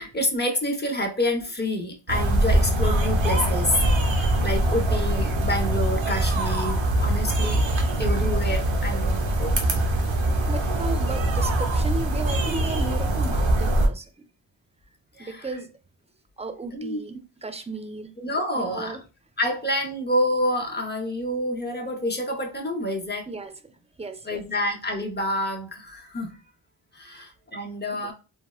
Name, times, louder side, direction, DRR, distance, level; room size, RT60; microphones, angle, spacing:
voice 1, 0.0-3.8 4.1-7.6 8.0-9.8 15.2-15.4 16.7-17.0 18.2-19.0 19.4-23.3 24.3-26.3 26.9-28.1, left 1 dB, 20° left, 0.8 m, -28 dB
sound 1, 2.1-13.9, right 1 dB, 80° right, 0.7 m, -23 dB
voice 2, 10.5-14.1 15.2-15.7 16.4-18.1 18.6-19.0 23.3-23.7 24.0-24.4 27.1-27.3 27.9-28.1, right 2 dB, 15° right, 0.4 m, -35 dB
3.4 x 2.1 x 2.3 m
cardioid pair, 50°, 46 cm